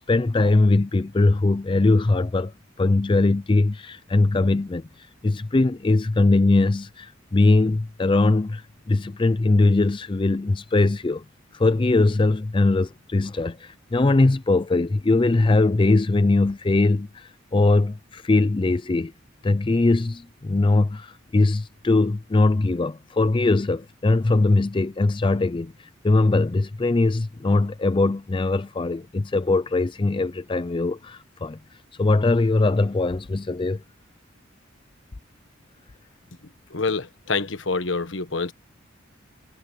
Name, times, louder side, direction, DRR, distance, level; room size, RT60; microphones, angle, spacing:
voice 1, 0.0-2.5 2.8-11.2 11.5-19.1 19.4-31.6 32.0-33.8, left 2 dB, 25° left, 0.4 m, -21 dB
voice 2, 36.7-38.5, left 4 dB, 65° left, 1.4 m, -26 dB
head